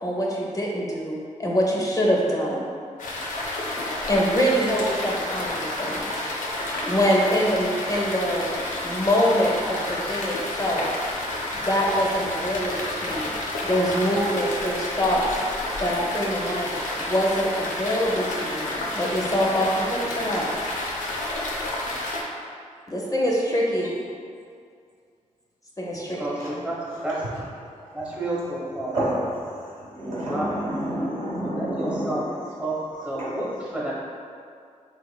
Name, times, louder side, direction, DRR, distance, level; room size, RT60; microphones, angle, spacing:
voice 1, 0.0-2.6 4.1-6.1 6.9-8.5 8.8-10.9 11.5-13.4 13.6-15.2 15.8-16.7 17.0-20.5 22.9-24.0 25.8-26.2, equal, 25° left, -3 dB, 0.5 m, -24 dB
sound 1, 3.0-22.2, left 1 dB, 90° left, 0.5 m, -30 dB
voice 2, 26.2-26.8 27.0-27.2 27.9-29.1 30.2-30.6 31.5-32.2 32.6-32.7 33.0-33.9, right 1 dB, 10° right, -6 dB, 0.8 m, -30 dB
voice 3, 28.9-29.5 29.9-32.2 33.1-33.3, right 1 dB, 80° right, -7 dB, 1.1 m, -28 dB
3.6 x 3.0 x 2.2 m, 2.3 s
wide cardioid pair, 95°, 13 cm